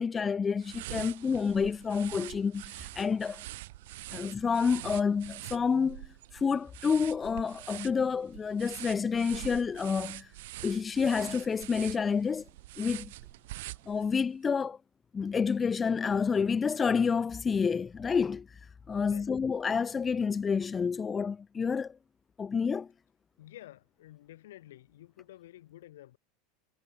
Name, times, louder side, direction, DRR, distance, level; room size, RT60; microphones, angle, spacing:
voice 1, 0.0-3.4 4.1-10.3 10.6-12.4 12.8-13.1 13.9-14.8 15.1-18.5 18.9-22.0 22.4-22.9, left 6 dB, 15° left, 0.5 m, -29 dB
sound 1, 0.6-14.3, right 18 dB, 70° right, 2.3 m, -45 dB
voice 2, 23.4-26.2, left 14 dB, 85° left, 4.2 m, -51 dB
supercardioid pair, 160°, 0 cm